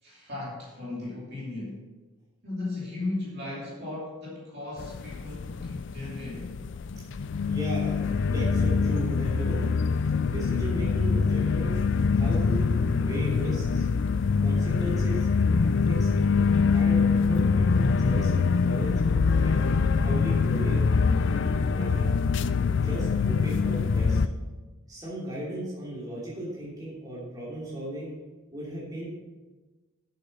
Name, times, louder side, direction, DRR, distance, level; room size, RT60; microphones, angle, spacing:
voice 1, 0.0-1.8 2.4-6.5, left 2 dB, 50° right, -5 dB, 2.8 m, -36 dB
sound 1, 4.8-24.3, left 5 dB, 55° left, 0.4 m, -24 dB
voice 2, 7.5-8.1 8.3-9.7 10.2-11.8 12.1-13.8 14.4-16.1 16.7-19.0 19.4-19.7 20.0-22.1 22.7-24.2 24.9-28.1 28.5-29.2, right 1 dB, 15° right, -7 dB, 3.1 m, -36 dB
8.4 x 7.3 x 5.5 m, 1.2 s
head